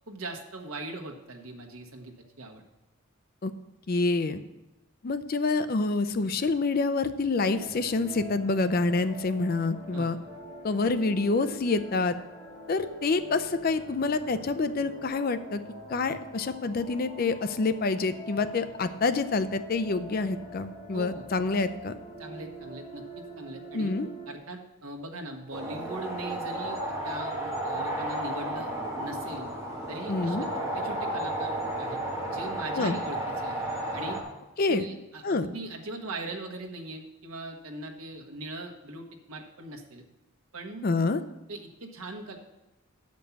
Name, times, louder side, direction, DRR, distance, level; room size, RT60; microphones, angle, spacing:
voice 1, 0.1-2.6 9.9-10.1 20.9-21.2 22.2-23.9 24.3-28.7 29.0-29.5 29.9-32.0 32.3-33.6 33.9-34.2 34.7-40.0 40.5-40.9 41.5-42.4, right 2 dB, 75° right, 2 dB, 1.2 m, -40 dB
voice 2, 3.9-4.4 5.0-10.2 10.6-12.2 12.7-15.6 15.9-22.0 23.7-24.1 30.1-30.5 32.8-32.9 34.6-34.8 35.2-35.5 40.8-41.2, left 3 dB, 40° left, 11 dB, 0.4 m, -27 dB
sound 1, 7.3-24.4, equal, 25° left, 3.7 m, -45 dB
sound 2, 25.5-34.2, right 1 dB, 15° right, 1.5 m, -33 dB
8.4 x 5.3 x 7.0 m, 1.0 s
head